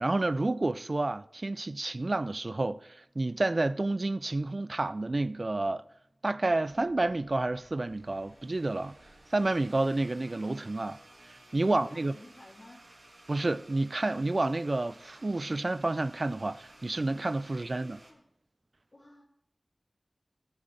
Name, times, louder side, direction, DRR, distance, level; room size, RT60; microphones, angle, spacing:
voice 1, 0.0-2.8 3.2-5.8 6.2-9.0 9.3-11.0 11.2-12.1 13.3-18.0, right 2 dB, 50° right, 0.4 m, -29 dB
sound 1, 6.7-18.1, right 1 dB, 75° right, 2.1 m, -56 dB
voice 2, 11.6-12.8 17.5-18.2 18.9-19.2, left 1 dB, 50° left, 2.8 m, -53 dB
12.5 x 11.5 x 3.3 m
wide cardioid pair, 60°, 0 cm